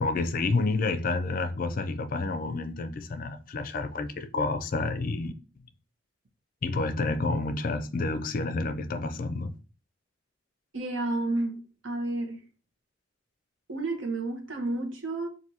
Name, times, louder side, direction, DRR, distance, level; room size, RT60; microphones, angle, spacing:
voice 1, 0.0-5.3 6.6-9.5, left 3 dB, 45° left, 0.4 m, -29 dB
voice 2, 10.7-12.4 13.7-15.3, right 2 dB, 80° right, 1.0 m, -31 dB
6.0 x 2.6 x 2.7 m
head